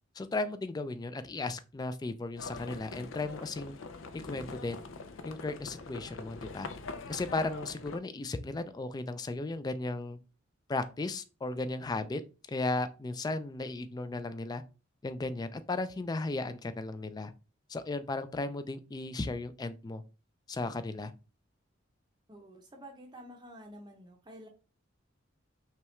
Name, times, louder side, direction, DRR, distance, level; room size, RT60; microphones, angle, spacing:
voice 1, 0.2-3.8 4.1-4.8 5.2-6.7 7.1-10.2 10.7-12.2 12.5-14.6 15.0-17.3 17.7-20.0 20.5-21.1, left 2 dB, 20° left, 11 dB, 0.3 m, -35 dB
Livestock farm animals working animals, 2.4-8.0, left 3 dB, 85° left, 0.5 m, -43 dB
voice 2, 22.3-24.5, equal, 20° right, 2 dB, 0.6 m, -50 dB
5.6 x 2.3 x 3.2 m, 0.33 s
head